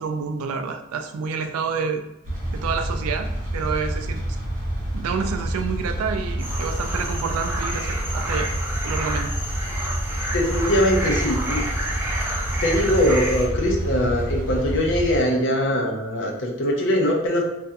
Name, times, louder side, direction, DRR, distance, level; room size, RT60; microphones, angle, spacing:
voice 1, 0.0-2.0 2.5-3.3 3.5-4.2 4.9-8.5 8.8-9.3, right 5 dB, 80° right, 6 dB, 0.3 m, -28 dB
sound 1, 2.2-15.2, right 1 dB, 35° right, 0.9 m, -28 dB
sound 2, 6.4-13.5, right 1 dB, 10° right, 0.4 m, -30 dB
voice 2, 10.3-11.6 12.6-17.4, equal, 60° left, 0 dB, 0.6 m, -22 dB
2.6 x 2.4 x 2.2 m, 0.89 s
head